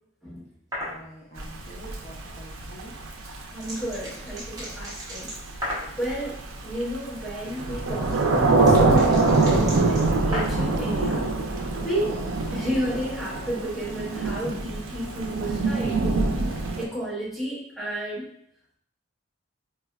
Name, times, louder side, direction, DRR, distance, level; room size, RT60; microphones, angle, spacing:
sound 1, 0.7-1.0 2.9-6.0 7.5-10.8, equal, 20° right, 0.9 m, -35 dB
voice 1, 0.8-3.0, right 1 dB, 40° left, -5 dB, 0.6 m, -46 dB
Thunder / Rain, 1.4-16.9, right 3 dB, 90° right, 0.4 m, -24 dB
voice 2, 3.5-5.3 6.0-11.3 11.8-12.2 12.5-18.3, equal, ahead, -10 dB, 1.3 m, -32 dB
4.2 x 2.1 x 2.3 m, 0.72 s
head